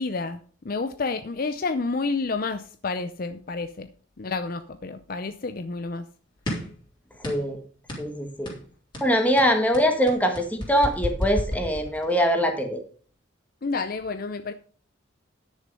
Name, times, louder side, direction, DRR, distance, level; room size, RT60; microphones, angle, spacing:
voice 1, 0.0-3.9 4.2-6.0 13.6-14.5, left 3 dB, 45° left, 10 dB, 0.5 m, -30 dB
sound 1, 6.5-6.8 7.2-7.6 7.9-8.1 8.5-8.7 8.9-12.3, left 1 dB, 25° left, 3.5 m, -31 dB
voice 2, 7.2-7.6 8.0-8.5 9.0-12.8, equal, 10° left, 4 dB, 1.6 m, -23 dB
10.5 x 6.6 x 5.4 m, 0.43 s
head